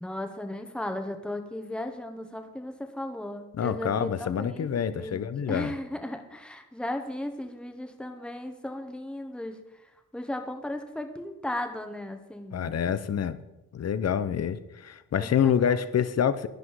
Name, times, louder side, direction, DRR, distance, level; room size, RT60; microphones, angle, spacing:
voice 1, 0.0-5.2 5.5-9.6 10.1-12.8 15.2-15.8, left 1 dB, 5° left, 5 dB, 1.3 m, -36 dB
voice 2, 3.5-5.7 12.5-13.4 13.7-16.5, left 8 dB, 50° left, 14 dB, 0.8 m, -27 dB
11.5 x 10.5 x 4.8 m, 0.99 s
cardioid pair, 105°, 33 cm